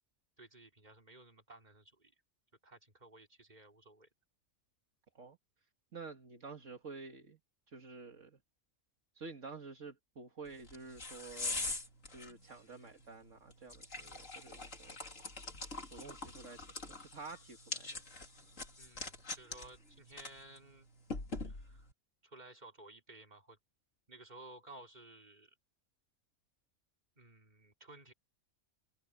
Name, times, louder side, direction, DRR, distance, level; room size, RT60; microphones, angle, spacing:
voice 1, 0.4-2.1 2.6-4.1 18.8-20.9 21.4-21.9 22.2-23.6 24.1-25.5 27.2-28.1, right 2 dB, 35° right, 4.0 m, -56 dB
voice 2, 5.9-7.4 7.7-8.4 9.1-11.8 12.1-15.0 15.9-18.0, right 4 dB, 70° right, 2.2 m, -50 dB
sound 1, 10.5-21.9, left 3 dB, 75° left, 3.6 m, -44 dB
omnidirectional pair, 1.4 m